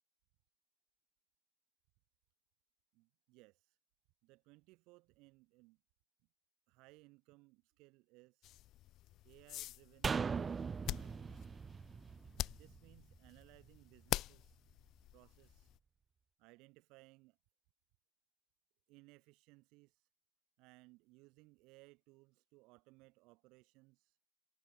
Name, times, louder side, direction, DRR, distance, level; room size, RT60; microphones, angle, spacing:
voice 1, 2.9-3.8 4.2-5.8 6.7-8.5 9.2-11.5 12.5-14.6 15.1-15.7 16.4-17.4 18.9-20.1 20.6-24.2, right 24 dB, 85° right, 2.1 m, -64 dB
sound 1, 8.4-15.8, left 15 dB, 60° left, 1.1 m, -46 dB
sound 2, 10.0-13.4 13.7-13.8, right 5 dB, 25° right, 0.6 m, -40 dB
cardioid pair, 140°, 0 cm